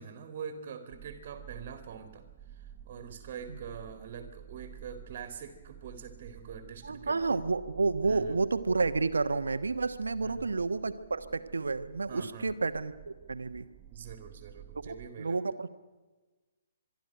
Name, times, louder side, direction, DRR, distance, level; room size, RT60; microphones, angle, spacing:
voice 1, 0.0-2.2 2.5-7.4 8.1-8.4 10.2-10.5 12.1-12.5 13.9-15.4, right 7 dB, 45° right, 8 dB, 2.2 m, -44 dB
sound 1, 0.9-15.1, right 10 dB, 30° right, 0.9 m, -51 dB
voice 2, 6.8-13.7 14.7-14.9 15.2-15.7, right 4 dB, 75° right, 10 dB, 1.2 m, -30 dB
25.0 x 12.0 x 9.0 m, 1.3 s
figure-of-eight pair, 130°, 0 cm